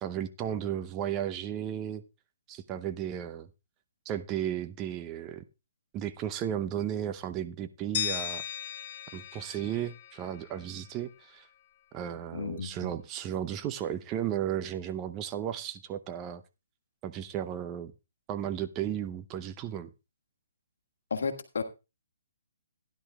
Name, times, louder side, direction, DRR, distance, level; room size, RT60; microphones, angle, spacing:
voice 1, 0.0-2.0 2.5-3.5 4.1-5.4 5.9-8.4 9.1-11.5 11.9-16.4 17.0-17.9 18.3-19.9, right 10 dB, 25° right, 0.7 m, -34 dB
sound 1, 7.9-10.9, left 9 dB, 40° left, 0.7 m, -37 dB
voice 2, 12.3-12.9 21.1-21.6, left 5 dB, 65° left, 1.5 m, -33 dB
15.5 x 10.5 x 2.3 m
figure-of-eight pair, 130°, 0 cm